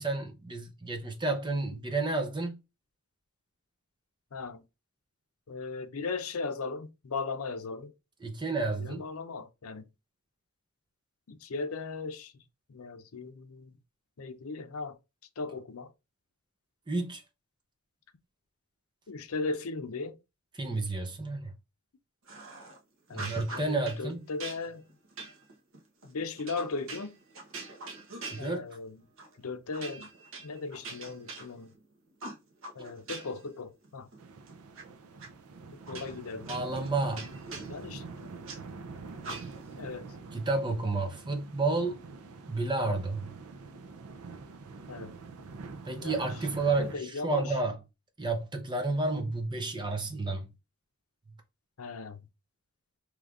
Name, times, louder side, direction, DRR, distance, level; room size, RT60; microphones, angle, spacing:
voice 1, 0.0-2.6 8.2-9.0 16.9-17.2 20.6-21.5 23.1-24.3 28.3-28.6 36.5-37.2 40.3-42.0 42.5-43.3 45.8-47.8 48.2-50.5, right 3 dB, 20° right, 0.7 m, -31 dB
voice 2, 4.3-4.6 5.5-7.9 8.8-9.8 11.3-12.3 12.7-13.8 14.2-15.0 15.4-15.9 19.1-20.2 23.1-24.9 26.0-27.2 28.4-29.0 29.4-30.1 30.4-31.7 32.7-34.1 35.7-36.6 37.7-38.3 39.7-40.1 44.9-45.1 46.0-46.3 46.6-47.6 51.8-52.2, left 4 dB, 75° left, 0.6 m, -37 dB
sound 1, 22.3-22.8 23.1-24.0 24.4-28.9 29.2-29.4 29.7-31.8 32.2-33.5 33.8-34.8 35.2-35.3 35.9-38.6 39.2-39.8, right 3 dB, 65° right, 1.1 m, -44 dB
sound 2, 34.2-47.0, right 4 dB, 85° right, 0.5 m, -45 dB
4.9 x 3.2 x 2.5 m
head